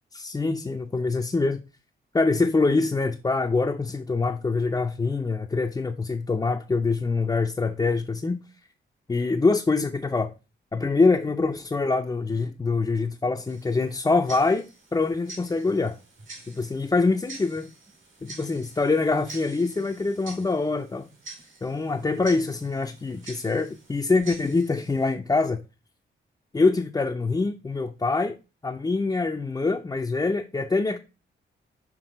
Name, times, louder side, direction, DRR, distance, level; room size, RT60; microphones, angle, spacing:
voice 1, 0.1-1.6 2.1-8.4 9.1-10.3 10.7-14.7 14.9-16.0 16.5-17.7 18.2-21.1 21.6-25.6 26.5-28.4 28.6-31.0, left 3 dB, 20° left, 0.5 m, -24 dB
Tick-tock, 13.5-25.1, right 2 dB, 75° right, 2.6 m, -46 dB
6.2 x 3.7 x 4.9 m
cardioid pair, 110°, 20 cm